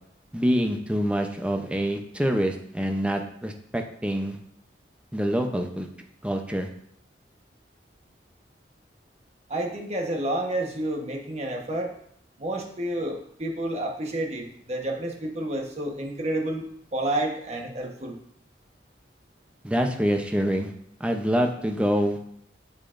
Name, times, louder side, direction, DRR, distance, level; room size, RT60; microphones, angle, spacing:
voice 1, 0.3-4.4 5.1-5.9 6.2-6.7 19.6-20.7 21.0-22.2, equal, 5° right, 4 dB, 0.6 m, -26 dB
voice 2, 9.5-11.9 12.4-18.2, right 1 dB, 40° right, 1 dB, 1.2 m, -30 dB
8.6 x 7.3 x 2.5 m, 0.70 s
head